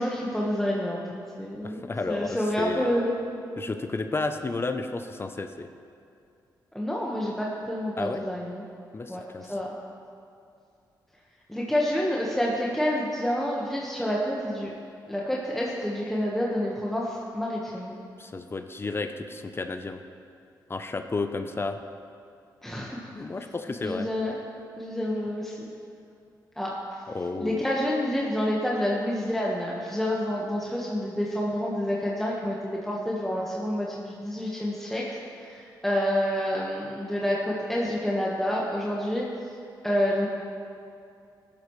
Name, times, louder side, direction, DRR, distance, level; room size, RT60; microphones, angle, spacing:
voice 1, 0.0-3.4 6.7-8.6 9.1-9.2 9.5-9.7 11.5-14.7 15.1-18.0 22.6-23.0 23.8-24.3 24.8-25.6 26.6-27.0 27.4-39.3 39.8-40.3, equal, 5° left, -4 dB, 1.3 m, -28 dB
voice 2, 1.6-2.9 3.6-5.7 8.0-8.2 8.9-9.5 18.2-20.0 20.7-21.8 23.1-24.1 27.1-27.6, left 3 dB, 30° left, 7 dB, 0.6 m, -32 dB
14.5 x 12.0 x 3.2 m, 2.5 s
cardioid pair, 85°, 8 cm